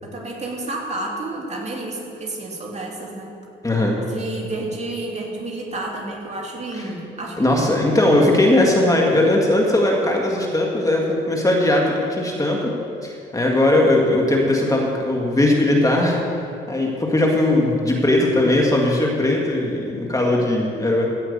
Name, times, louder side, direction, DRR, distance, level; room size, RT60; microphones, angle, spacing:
voice 1, 0.0-3.3 4.1-7.8, right 2 dB, 35° right, -2 dB, 2.9 m, -30 dB
voice 2, 3.6-4.0 6.7-6.9 7.4-12.7 13.0-16.2 16.7-21.1, left 1 dB, 15° left, -1 dB, 1.9 m, -19 dB
15.0 x 5.8 x 8.4 m, 2.5 s
cardioid pair, 90°, 20 cm